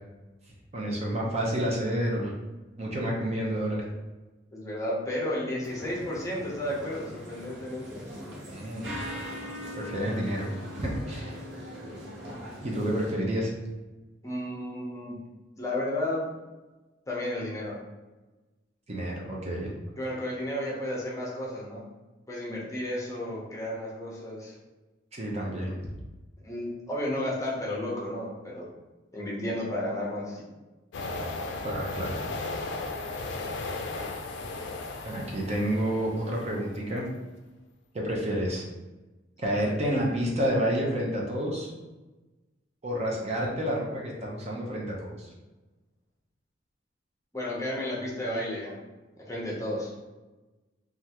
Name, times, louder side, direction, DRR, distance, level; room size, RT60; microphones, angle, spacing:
voice 1, 0.7-2.3 2.8-3.8 8.5-8.9 9.8-10.5 10.7-11.4 12.6-13.5 18.9-19.7 25.1-25.8 31.6-32.2 35.0-37.0 37.9-38.6 39.4-41.7 42.8-45.3, equal, 35° right, -3 dB, 0.6 m, -29 dB
voice 2, 4.5-8.1 14.2-15.2 15.6-16.3 17.1-17.8 20.0-21.8 22.3-24.5 26.4-28.7 29.1-30.4 47.3-48.8 49.2-49.9, left 1 dB, 15° left, -5 dB, 0.7 m, -32 dB
sound 1, 5.6-13.1, equal, 70° right, 0.9 m, -41 dB
sound 2, 30.9-36.7, left 3 dB, 65° left, 0.4 m, -36 dB
3.3 x 2.4 x 2.8 m, 1.1 s
head